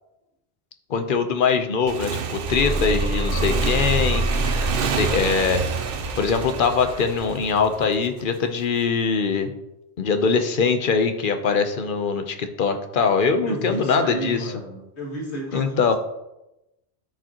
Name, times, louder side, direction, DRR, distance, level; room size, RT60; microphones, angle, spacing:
voice 1, 0.9-4.2 5.0-5.6 6.2-9.5 10.0-14.4 15.5-15.9, left 5 dB, 50° left, 8 dB, 0.9 m, -22 dB
Motorcycle / Engine, 1.9-8.2, right 6 dB, 60° right, 0.8 m, -29 dB
sound 1, 2.5-7.6, right 1 dB, 15° right, 0.7 m, -27 dB
voice 2, 4.8-5.3 13.4-15.9, right 1 dB, 75° left, -3 dB, 2.4 m, -32 dB
13.5 x 5.1 x 2.9 m, 0.92 s
omnidirectional pair, 1.1 m